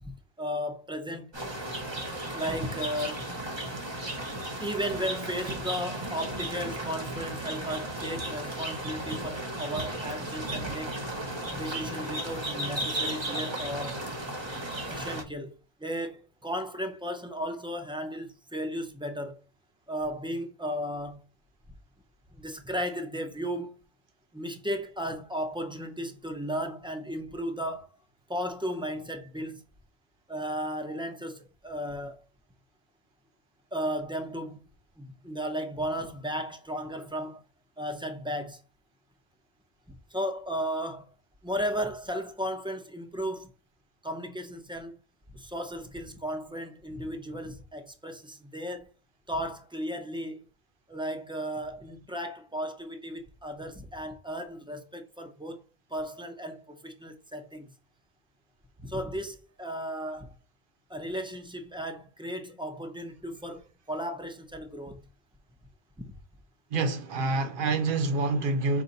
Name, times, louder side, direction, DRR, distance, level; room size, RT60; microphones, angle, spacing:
voice 1, 0.0-1.3 2.3-3.2 4.6-11.0 11.5-14.0 14.9-19.4 19.9-21.2 22.4-23.8 24.3-27.9 28.3-29.6 30.3-32.2 33.7-34.6 35.0-37.4 37.8-38.6 40.1-41.1 41.4-43.5 44.0-45.0 45.3-48.9 49.3-50.4 50.9-55.6 55.9-57.7 58.8-60.3 60.9-65.0 66.0-66.1, equal, 5° right, 0.5 m, -35 dB
sound 1, 1.3-15.2, right 1 dB, 30° right, 0.9 m, -35 dB
voice 2, 66.7-68.8, right 3 dB, 60° right, 0.8 m, -27 dB
5.2 x 2.6 x 4.0 m
omnidirectional pair, 1.0 m